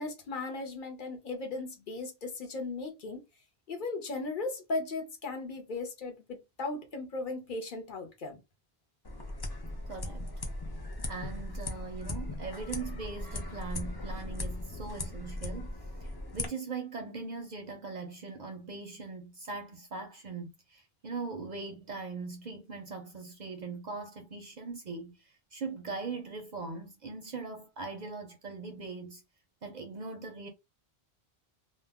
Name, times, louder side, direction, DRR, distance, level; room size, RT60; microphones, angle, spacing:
voice 1, 0.0-3.2 3.7-8.4, left 3 dB, 55° left, 0.8 m, -37 dB
sound 1, 9.0-16.5, left 2 dB, 35° left, 0.4 m, -38 dB
voice 2, 9.9-10.3 11.1-29.2 29.6-30.5, right 4 dB, 55° right, 0.5 m, -41 dB
2.3 x 2.0 x 3.4 m
omnidirectional pair, 1.0 m